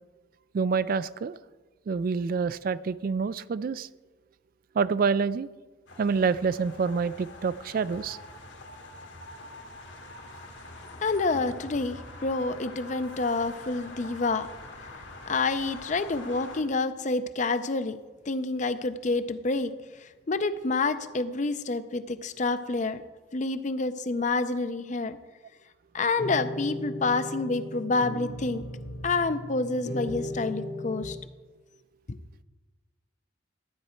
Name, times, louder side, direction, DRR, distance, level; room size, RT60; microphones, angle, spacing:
voice 1, 0.5-1.4 1.9-3.9 4.8-5.5 6.0-8.2, right 5 dB, 50° right, 16 dB, 0.3 m, -27 dB
sound 1, 5.9-16.6, left 2 dB, 70° left, 1.6 m, -45 dB
voice 2, 11.0-14.5 15.3-18.0 18.3-19.7 20.0-23.0 23.3-25.2 25.9-28.6 29.0-31.2 32.1-32.2, left 3 dB, 40° left, 12 dB, 0.5 m, -28 dB
sound 2, 26.2-31.1, left 1 dB, 85° left, 2.0 m, -37 dB
13.0 x 8.8 x 4.4 m, 1.2 s
head